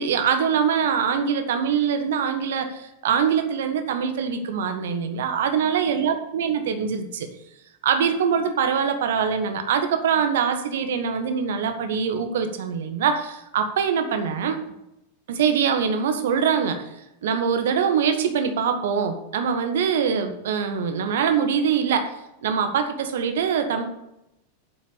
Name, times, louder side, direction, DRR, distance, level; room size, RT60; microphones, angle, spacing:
voice 1, 0.0-7.3 7.8-14.6 15.3-16.8 17.2-22.2 22.4-23.8, right 7 dB, 60° right, 7 dB, 1.5 m, -23 dB
9.0 x 7.4 x 7.0 m, 0.86 s
figure-of-eight pair, 90°, 0 cm